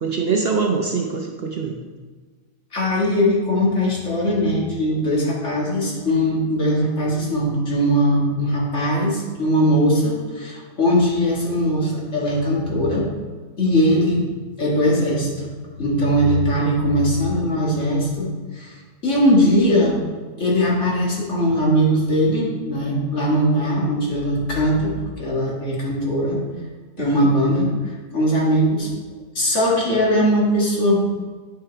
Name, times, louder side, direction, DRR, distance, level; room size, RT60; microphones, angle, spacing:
voice 1, 0.0-1.8 27.0-27.3, right 5 dB, 55° right, 2 dB, 0.8 m, -23 dB
voice 2, 2.7-13.1 13.6-15.5 15.8-18.3 18.5-18.7 19.0-20.0 20.4-26.4 27.0-27.7 28.1-28.9 29.4-31.0, equal, 55° left, -4 dB, 2.1 m, -20 dB
9.7 x 4.8 x 4.4 m, 1.4 s
omnidirectional pair, 1.5 m